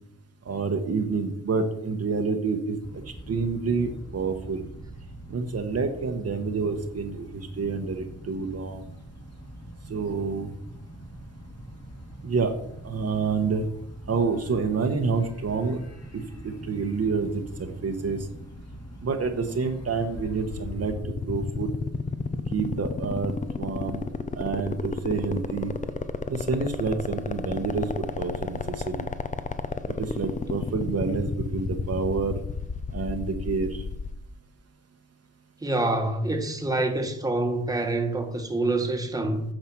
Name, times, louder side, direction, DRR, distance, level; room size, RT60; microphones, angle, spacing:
voice 1, 0.5-2.8 3.3-4.6 5.3-8.8 9.9-10.5 12.2-12.5 12.8-13.7 14.1-15.8 16.1-18.3 19.0-21.7 22.5-24.0 24.3-25.7 26.3-29.1 29.9-32.4 32.9-33.8, right 4 dB, 50° right, 1.1 m, -28 dB
sound 1, 2.8-21.0, right 1 dB, 50° left, 2.8 m, -43 dB
sound 2, 20.1-34.2, left 4 dB, 25° left, 0.6 m, -31 dB
voice 2, 35.6-39.4, right 2 dB, 10° right, 1.3 m, -26 dB
9.0 x 5.7 x 5.9 m
cardioid pair, 95°, 33 cm